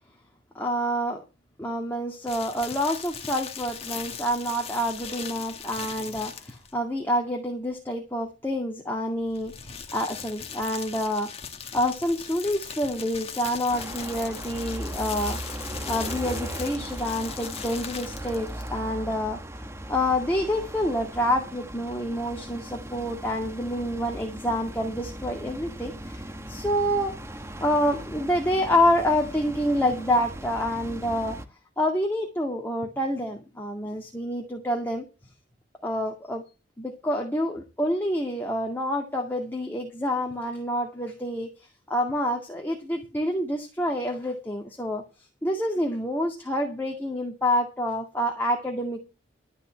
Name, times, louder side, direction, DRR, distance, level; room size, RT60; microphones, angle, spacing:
voice 1, 0.5-1.2 1.6-11.3 11.7-15.4 15.9-19.4 19.9-26.2 26.5-27.1 27.6-31.4 31.8-35.0 35.8-36.4 36.8-41.5 41.9-45.0 45.4-49.0, equal, 10° left, 1 dB, 2.1 m, -27 dB
sound 1, 2.3-6.8 9.2-18.8, left 7 dB, 35° left, 1.7 m, -39 dB
sound 2, 13.7-31.5, right 1 dB, 15° right, 1.1 m, -38 dB
13.0 x 5.6 x 8.6 m, 0.30 s
head